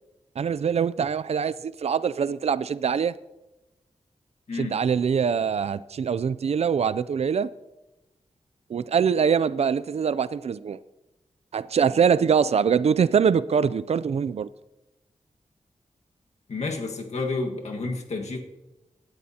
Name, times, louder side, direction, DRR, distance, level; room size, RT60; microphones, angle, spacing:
voice 1, 0.4-3.2 4.5-7.5 8.7-10.8 11.5-14.5, right 7 dB, 60° right, 0.4 m, -23 dB
voice 2, 4.5-4.8 16.5-18.4, left 3 dB, 65° left, 1.6 m, -30 dB
18.0 x 13.0 x 2.8 m
wide cardioid pair, 125°, 12 cm